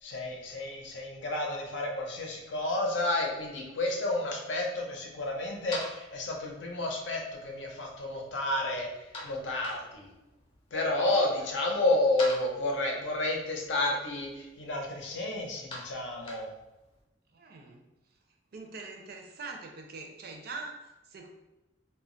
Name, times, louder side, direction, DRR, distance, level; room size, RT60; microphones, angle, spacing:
voice 1, 0.0-8.9 9.2-10.1 10.7-16.5, left 2 dB, 80° left, 0 dB, 0.6 m, -31 dB
sound 1, 5.0-17.0, left 1 dB, 30° left, 0.6 m, -47 dB
voice 2, 17.3-17.8 18.5-21.3, right 3 dB, 55° right, 2 dB, 0.4 m, -43 dB
2.2 x 2.0 x 3.6 m, 0.99 s
head